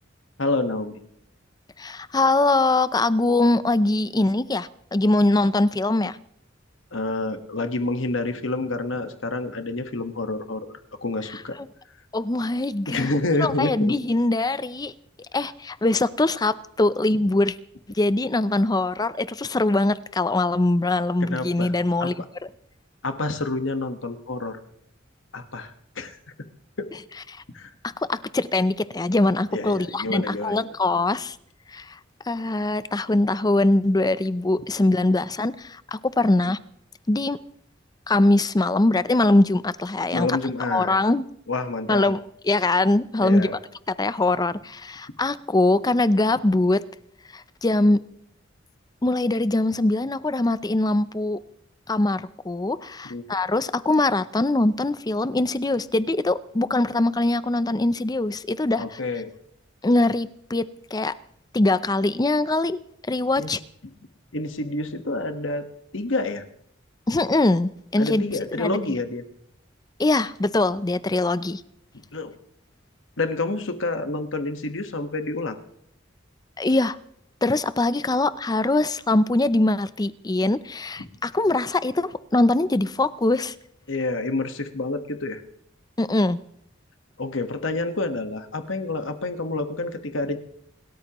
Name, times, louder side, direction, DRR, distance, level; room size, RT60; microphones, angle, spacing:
voice 1, 0.4-1.0 6.9-10.7 11.0-11.6 12.9-13.9 21.2-21.7 22.0-22.1 23.0-24.6 25.3-26.2 26.8-26.9 27.5-27.7 29.5-30.7 40.1-41.0 41.5-42.1 43.2-43.6 53.1-53.2 58.8-59.3 63.4-63.6 64.3-65.7 65.9-66.4 68.0-69.2 72.1-72.3 73.2-75.6 81.0-81.1 83.9-85.4 87.2-90.4, left 2 dB, 75° left, 1.4 m, -28 dB
voice 2, 1.8-6.2 11.3-11.7 12.1-13.1 13.4-14.9 15.3-17.6 17.9-22.1 22.4-22.5 27.3-27.4 28.0-31.4 31.7-32.0 32.3-36.6 37.1-37.4 38.1-40.4 40.7-41.2 41.9-43.6 43.9-46.8 47.3-48.0 49.0-51.4 51.9-59.0 59.8-60.6 60.9-61.1 61.5-62.8 63.1-63.6 67.1-69.0 70.0-71.6 76.6-77.0 77.4-83.5 86.0-86.4, left 2 dB, 20° left, 0.5 m, -22 dB
27.5 x 13.0 x 3.0 m
head